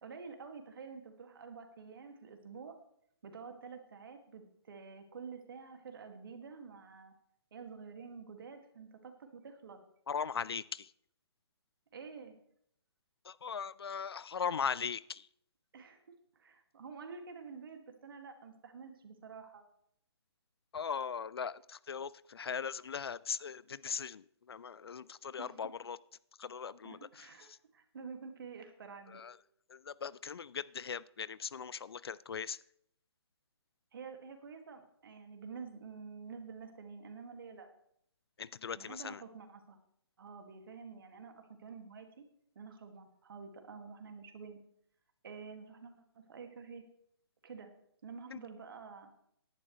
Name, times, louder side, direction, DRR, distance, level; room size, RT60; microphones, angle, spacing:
voice 1, 0.0-2.8 3.2-7.1 7.5-9.8 11.9-12.4 15.7-16.0 16.4-19.6 25.4-25.6 26.8-29.2 33.9-37.7 38.8-39.8 40.2-42.2 42.6-44.6 45.2-46.8 47.4-47.7 48.0-49.1, right 5 dB, 55° right, 5 dB, 2.2 m, -49 dB
voice 2, 10.1-10.9 13.3-15.3 20.7-26.0 26.4-27.3 29.1-29.4 29.7-32.6 38.4-39.2 48.3-48.4, left 6 dB, 65° left, 20 dB, 0.4 m, -39 dB
17.5 x 11.0 x 3.2 m, 0.71 s
figure-of-eight pair, 140°, 14 cm